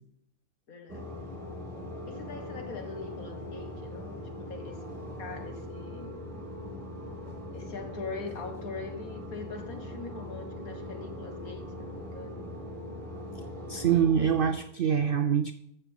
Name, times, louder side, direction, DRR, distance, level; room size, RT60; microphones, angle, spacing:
voice 1, 0.7-1.1 2.1-4.2 4.5-4.9 5.2-6.2 7.5-12.5, left 4 dB, 70° left, 5 dB, 2.1 m, -42 dB
sound 1, 0.9-14.5, left 1 dB, 10° right, 2.8 m, -41 dB
voice 2, 13.7-15.5, right 8 dB, 70° right, 11 dB, 0.5 m, -25 dB
14.0 x 6.7 x 5.7 m, 0.74 s
omnidirectional pair, 1.5 m